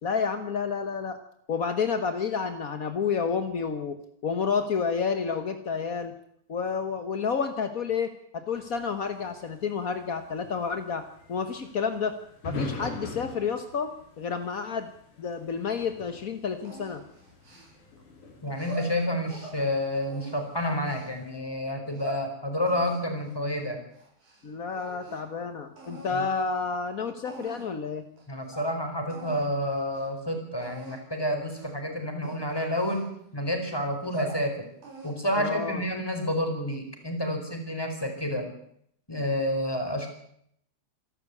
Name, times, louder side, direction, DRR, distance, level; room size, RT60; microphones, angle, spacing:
voice 1, 0.0-1.2 1.5-4.0 4.2-6.1 6.5-11.0 11.3-12.1 12.4-14.9 15.2-17.0 24.4-28.1 35.3-35.8, left 5 dB, 55° left, 8 dB, 0.9 m, -30 dB
sound 1, 8.5-21.4, left 2 dB, 80° left, 5.3 m, -44 dB
sound 2, 16.7-18.0 18.5-19.6 20.1-21.1 21.7-22.3 22.7-24.4 24.7-25.3 25.8-26.2 26.9-27.0 27.3-27.8 28.2-28.3 28.5-28.7 29.1-29.5 29.8-30.1 30.6-31.0 31.5-31.8 32.2-33.4 33.9-34.4 34.8-35.3, right 2 dB, 85° right, 8.6 m, -42 dB
voice 2, 18.4-23.8 26.1-26.2 28.3-34.5 35.0-38.5 39.1-40.1, equal, 5° left, 4 dB, 4.3 m, -29 dB
27.0 x 12.5 x 8.5 m, 0.71 s
omnidirectional pair, 3.5 m